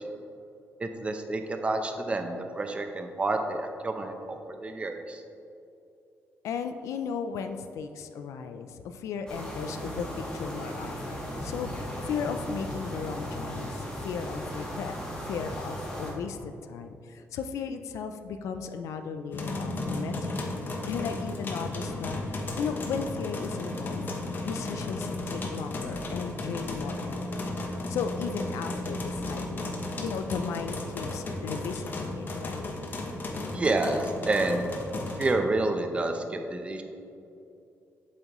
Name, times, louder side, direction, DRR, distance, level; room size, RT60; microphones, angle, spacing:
voice 1, 0.8-5.2 33.5-34.6 35.2-36.8, right 2 dB, 25° right, 5 dB, 0.6 m, -29 dB
voice 2, 6.4-11.0 11.4-14.9 15.2-20.6 20.9-24.0 24.4-27.5 27.9-32.6, left 6 dB, 90° left, 8 dB, 0.4 m, -36 dB
sound 1, 9.3-16.1, equal, 15° left, 1.8 m, -36 dB
sound 2, 19.3-35.3, left 2 dB, 40° left, 1.0 m, -34 dB
8.2 x 7.4 x 3.0 m, 2.7 s
cardioid pair, 130°, 5 cm